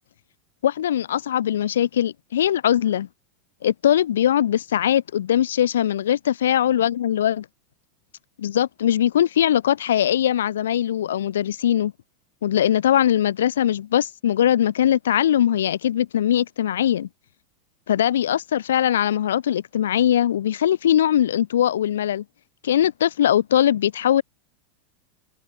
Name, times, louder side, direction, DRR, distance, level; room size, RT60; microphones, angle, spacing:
voice 1, 0.6-3.1 3.6-7.5 8.4-11.9 12.4-17.1 17.9-22.2 22.6-24.2, left 10 dB, 75° left, 7.2 m, -21 dB
hypercardioid pair, 90°, 0 cm